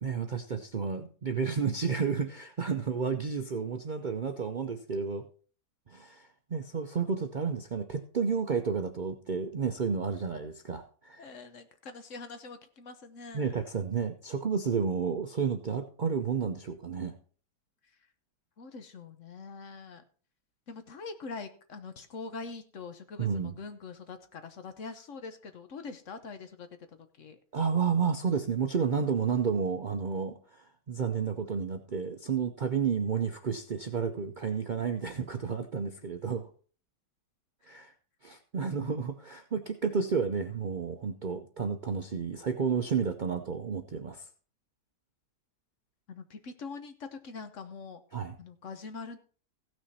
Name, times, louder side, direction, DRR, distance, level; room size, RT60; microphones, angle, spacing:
voice 1, 0.0-5.3 5.9-11.3 13.3-17.2 23.2-23.5 27.5-36.5 37.6-37.9 38.2-44.3 48.1-48.4, right 6 dB, 90° right, 6 dB, 0.4 m, -31 dB
voice 2, 11.2-13.5 18.6-20.0 20.7-27.4 37.6-37.8 46.1-48.0 48.4-49.2, left 4 dB, 50° left, 9 dB, 1.2 m, -44 dB
15.5 x 6.2 x 4.2 m, 0.41 s
omnidirectional pair, 1.8 m